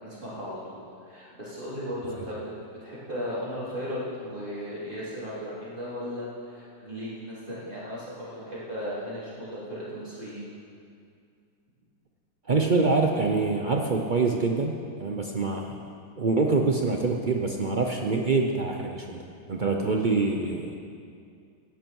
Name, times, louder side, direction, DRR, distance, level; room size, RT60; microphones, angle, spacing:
voice 1, 0.0-2.5 2.8-10.5 15.4-15.6, equal, 25° right, -10 dB, 3.9 m, -36 dB
voice 2, 12.5-15.7 16.2-20.7, right 3 dB, 70° right, 2 dB, 0.4 m, -25 dB
17.0 x 10.5 x 4.7 m, 2.4 s
omnidirectional pair, 1.9 m